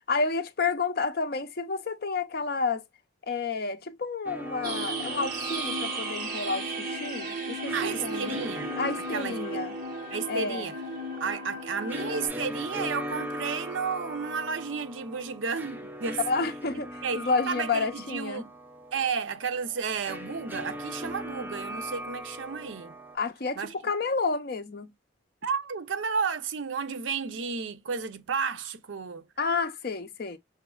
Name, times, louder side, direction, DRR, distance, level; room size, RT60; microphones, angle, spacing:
voice 1, 0.1-2.8 3.3-8.4 8.8-9.7 10.3-10.7 16.2-18.4 23.1-24.9 29.4-30.4, left 4 dB, 50° left, 0.6 m, -30 dB
sound 1, 4.2-23.2, equal, 10° right, 0.4 m, -40 dB
Blade Runners Harmony, 4.6-12.3, right 2 dB, 45° right, 1.1 m, -35 dB
voice 2, 7.7-8.7 9.1-9.4 10.1-10.7 11.2-16.2 17.0-18.5 18.9-23.0 23.6-23.7 25.4-29.3, right 5 dB, 70° right, 0.6 m, -32 dB
5.7 x 3.0 x 2.2 m
head